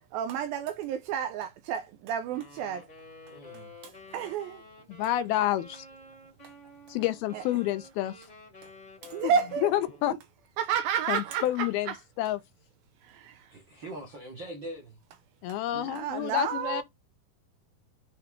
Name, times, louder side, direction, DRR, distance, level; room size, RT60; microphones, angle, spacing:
voice 1, 0.1-2.9 3.8-4.6 7.3-7.4 9.0-9.7 10.6-12.0 13.0-13.5 15.7-16.8, right 8 dB, 80° right, 2.2 m, -31 dB
Wind instrument woodwind instrument, 2.2-10.2, left 2 dB, 25° left, 0.9 m, -51 dB
voice 2, 3.3-3.7 13.5-15.0, right 1 dB, 60° right, 1.2 m, -42 dB
voice 3, 4.9-5.9 6.9-8.3 9.2-9.3 9.6-10.1 11.1-12.4 15.4-16.8, left 14 dB, 80° left, 2.4 m, -29 dB
10.0 x 3.5 x 3.6 m
omnidirectional pair, 4.7 m